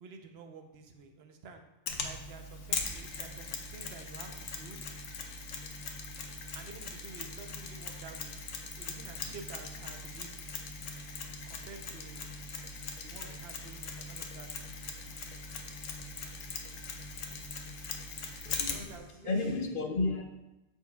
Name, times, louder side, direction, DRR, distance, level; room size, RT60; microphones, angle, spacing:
voice 1, 0.0-1.6 2.0-4.8 6.5-8.3 8.8-10.4 11.4-12.4 13.0-14.5 18.7-19.6, right 5 dB, 65° right, 5 dB, 0.9 m, -50 dB
Mechanisms, 1.9-19.0, left 4 dB, 90° left, 1.1 m, -40 dB
voice 2, 18.4-18.9 19.2-20.2, left 3 dB, 55° left, 4 dB, 0.8 m, -32 dB
12.5 x 4.5 x 2.3 m, 0.98 s
omnidirectional pair, 1.2 m